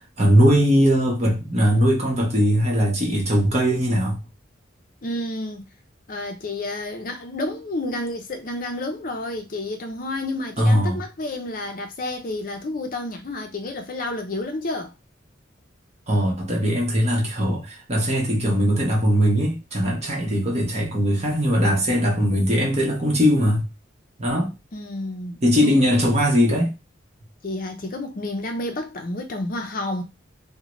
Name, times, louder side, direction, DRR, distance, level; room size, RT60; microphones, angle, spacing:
voice 1, 0.2-4.2 10.6-11.0 16.1-23.7 24.2-24.5 25.4-26.7, equal, 35° right, 1.0 m, -20 dB
voice 2, 5.0-5.7 6.1-14.9 24.7-25.9 27.4-30.0, left 2 dB, 45° left, 0.5 m, -30 dB
3.7 x 2.1 x 3.0 m
head